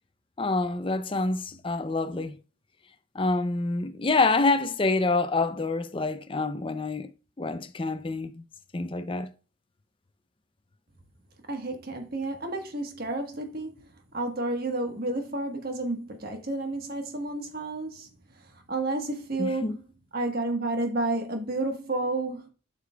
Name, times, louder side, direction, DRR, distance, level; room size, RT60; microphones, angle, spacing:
voice 1, 0.4-2.4 3.1-7.1 7.4-8.4 8.7-9.3 19.4-19.8, left 3 dB, 25° left, 0.5 m, -27 dB
voice 2, 11.5-13.7 14.1-18.1 18.7-19.8 20.1-22.5, right 2 dB, 45° right, 1.3 m, -31 dB
8.0 x 6.6 x 2.3 m
head